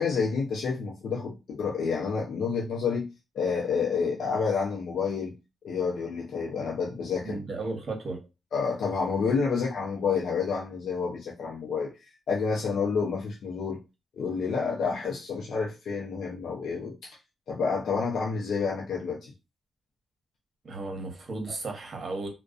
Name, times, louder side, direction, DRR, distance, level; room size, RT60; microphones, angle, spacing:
voice 1, 0.0-3.1 3.3-5.3 5.6-7.4 8.5-11.9 12.3-13.8 14.2-17.1 17.5-19.3, left 5 dB, 75° left, 0.5 m, -29 dB
voice 2, 7.2-8.2 20.6-22.3, right 3 dB, 55° right, 0.9 m, -34 dB
2.3 x 2.2 x 2.4 m
cardioid pair, 60°, 0 cm